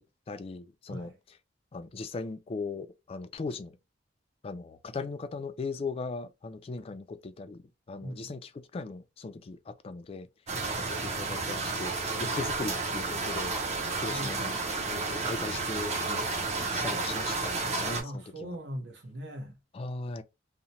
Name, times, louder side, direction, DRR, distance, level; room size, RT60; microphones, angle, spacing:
voice 1, 0.3-1.1 1.7-3.7 4.4-7.6 7.9-10.3 10.8-11.9 12.2-13.6 13.9-14.6 14.9-16.3 16.6-18.6 19.7-20.2, left 3 dB, 30° left, 0.3 m, -38 dB
voice 2, 8.0-8.3 14.1-14.5 17.9-19.6, equal, 65° right, 0.9 m, -40 dB
sound 1, 10.5-18.0, right 3 dB, 35° right, 0.7 m, -31 dB
2.8 x 2.1 x 2.6 m
head